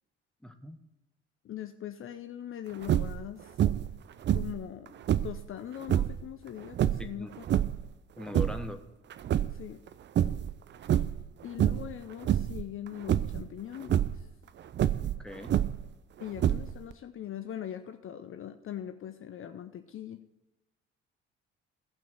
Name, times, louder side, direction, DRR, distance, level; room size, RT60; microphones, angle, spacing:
voice 1, 0.4-0.8 7.0-7.3 8.2-8.8 15.0-15.6, left 1 dB, ahead, 6 dB, 1.2 m, -40 dB
voice 2, 1.4-3.6 4.3-4.9 5.2-7.7 9.5-9.8 11.4-14.3 16.2-20.2, left 10 dB, 35° left, 8 dB, 0.7 m, -41 dB
sound 1, 2.8-3.2 3.6-4.0 4.2-5.4 5.8-6.2 6.7-7.9 8.2-8.7 9.1-9.9 10.2-10.5 10.8-11.2 11.6-11.9 12.2-12.6 13.1-13.4 13.8-14.2 14.7-15.9 16.4-16.9, right 11 dB, 30° right, 0.5 m, -27 dB
16.5 x 6.1 x 4.4 m, 1.0 s
figure-of-eight pair, 50°, 35 cm